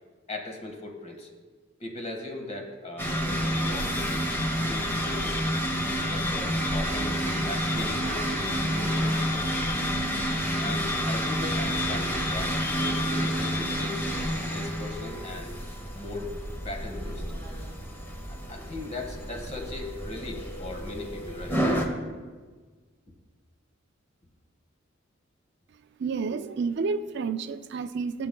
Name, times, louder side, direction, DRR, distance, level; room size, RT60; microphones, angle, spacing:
voice 1, 0.3-1.3 1.8-4.1 4.7-5.4 6.0-9.4 10.6-14.1 14.4-15.5 15.9-17.3 18.3-21.6, left 2 dB, 35° left, 2 dB, 1.6 m, -38 dB
sound 1, 3.0-21.9, equal, 10° left, 1.1 m, -29 dB
voice 2, 26.0-28.3, right 5 dB, 60° right, 10 dB, 0.4 m, -30 dB
18.5 x 7.9 x 2.3 m, 1.4 s
head